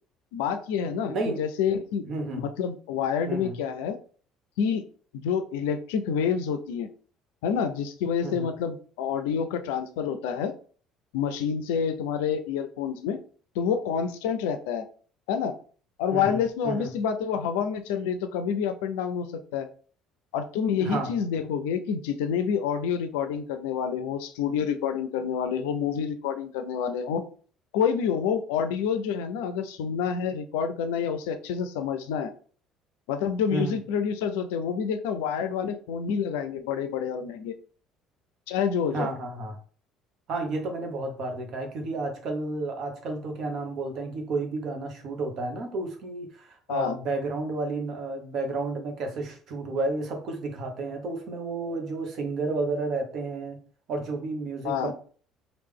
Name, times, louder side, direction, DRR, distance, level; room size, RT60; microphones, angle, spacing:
voice 1, 0.3-2.0 2.4-4.0 4.6-4.8 5.1-6.9 7.4-10.5 11.1-13.2 13.6-14.8 15.3-15.5 16.0-19.7 20.3-27.2 27.7-32.3 33.1-37.5 38.5-39.1 46.7-47.0 54.6-54.9, left 7 dB, 75° left, 8 dB, 0.4 m, -28 dB
voice 2, 1.1-1.4 2.0-2.5 3.3-3.6 8.2-8.5 16.1-16.9 20.7-21.1 33.5-33.8 38.9-39.6 40.3-53.6 53.9-54.9, right 3 dB, 55° right, 3 dB, 1.0 m, -31 dB
3.2 x 2.5 x 3.5 m, 0.43 s
hypercardioid pair, 60°, 0 cm